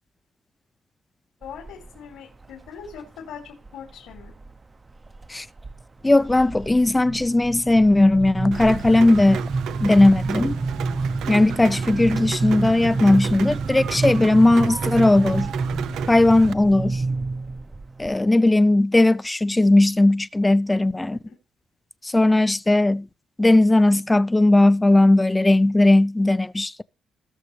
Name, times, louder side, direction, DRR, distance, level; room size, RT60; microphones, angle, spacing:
voice 1, 1.4-4.3 21.1-21.4, left 7 dB, 90° left, 3.5 m, -41 dB
sound 1, 1.4-2.0 2.4-3.0 3.7-4.5 4.9-5.3 5.6-18.2, right 3 dB, 25° right, 0.7 m, -29 dB
voice 2, 6.0-9.4 9.8-10.6 11.3-15.5 16.1-17.0 18.0-21.2 22.0-23.1 23.4-26.8, left 2 dB, 15° left, 0.4 m, -17 dB
Rain, 8.5-16.5, right 10 dB, 75° right, 0.5 m, -33 dB
19.0 x 6.3 x 3.3 m
cardioid pair, 90°, 0 cm